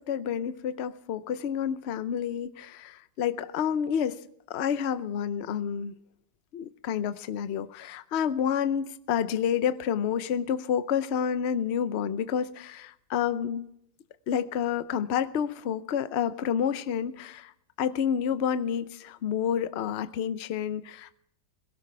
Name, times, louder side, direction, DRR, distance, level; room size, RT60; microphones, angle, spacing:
voice 1, 0.1-4.2 4.5-5.9 6.5-13.7 14.3-17.5 17.8-21.2, left 8 dB, 60° left, 13 dB, 0.7 m, -29 dB
22.5 x 17.0 x 3.3 m, 0.74 s
omnidirectional pair, 1.9 m